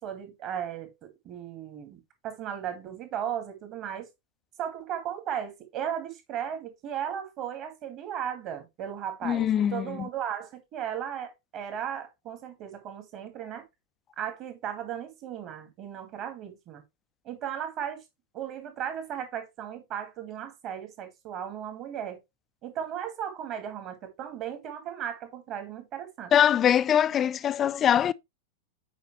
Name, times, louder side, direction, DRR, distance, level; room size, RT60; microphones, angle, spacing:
voice 1, 0.0-4.1 4.6-13.7 14.2-16.8 17.2-18.0 18.3-22.2 22.6-26.3, right 9 dB, 35° right, 2.1 m, -36 dB
voice 2, 9.2-10.1 26.3-28.1, left 9 dB, 25° left, 0.4 m, -23 dB
8.2 x 5.1 x 3.1 m
figure-of-eight pair, 90°, 0 cm